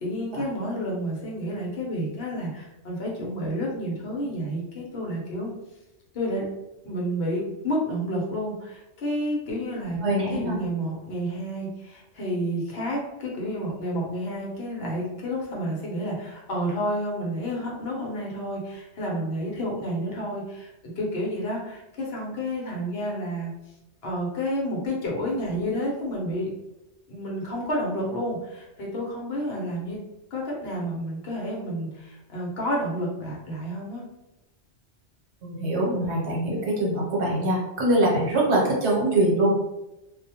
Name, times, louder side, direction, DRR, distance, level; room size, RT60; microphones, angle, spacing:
voice 1, 0.0-5.5 6.1-6.4 6.8-10.0 10.3-23.5 24.0-26.5 27.1-30.0 30.3-34.0, equal, 65° left, -3 dB, 0.9 m, -30 dB
voice 2, 10.0-10.6 35.4-39.5, right 1 dB, 75° right, -4 dB, 1.1 m, -23 dB
2.4 x 2.1 x 2.8 m, 0.96 s
omnidirectional pair, 1.2 m